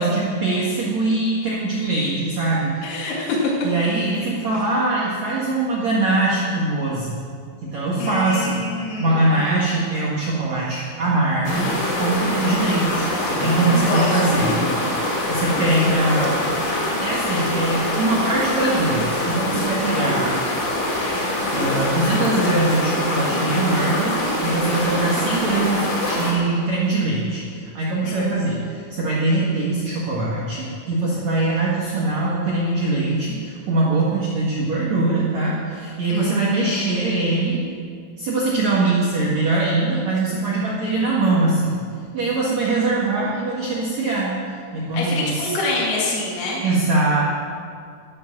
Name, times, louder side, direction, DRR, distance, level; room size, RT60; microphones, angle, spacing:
voice 1, 0.0-3.1 3.6-7.2 7.6-8.6 9.0-14.5 14.9-16.5 17.0-20.3 21.5-37.7 38.2-41.8 42.1-44.4 44.7-45.6 46.6-47.2, right 2 dB, 80° right, -6 dB, 1.6 m, -22 dB
voice 2, 2.8-3.4 8.0-9.6 13.4-14.4 28.0-28.6 36.1-36.9 44.9-46.6, left 2 dB, 55° left, -5 dB, 3.5 m, -27 dB
sound 1, 11.4-26.3, left 1 dB, 40° left, 3.8 m, -24 dB
12.0 x 10.5 x 7.3 m, 2.2 s
omnidirectional pair, 6.0 m